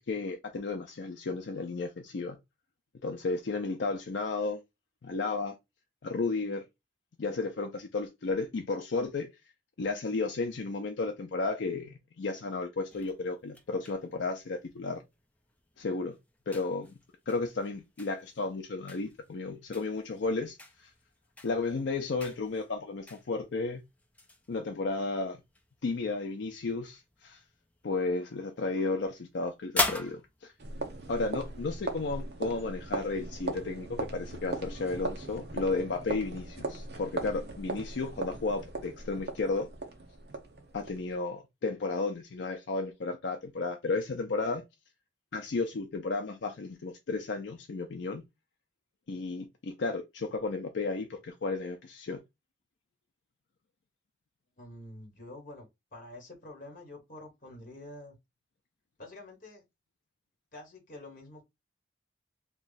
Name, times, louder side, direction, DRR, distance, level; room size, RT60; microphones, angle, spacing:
voice 1, 0.1-2.4 3.0-4.6 5.0-5.6 6.0-6.6 7.2-9.3 9.8-15.0 15.8-16.2 16.5-17.0 17.3-20.9 21.4-23.8 24.5-25.4 25.8-27.4 27.8-30.5 31.1-39.7 40.7-44.6 45.3-48.2 49.1-52.2, left 3 dB, 70° left, 0.5 m, -33 dB
sound 1, 12.9-31.7, left 2 dB, 10° left, 0.4 m, -42 dB
sound 2, 30.6-41.2, right 2 dB, 60° right, 0.7 m, -39 dB
voice 2, 54.6-58.2 59.0-59.6 60.5-61.4, left 1 dB, 45° left, 1.3 m, -47 dB
3.0 x 2.3 x 3.9 m
head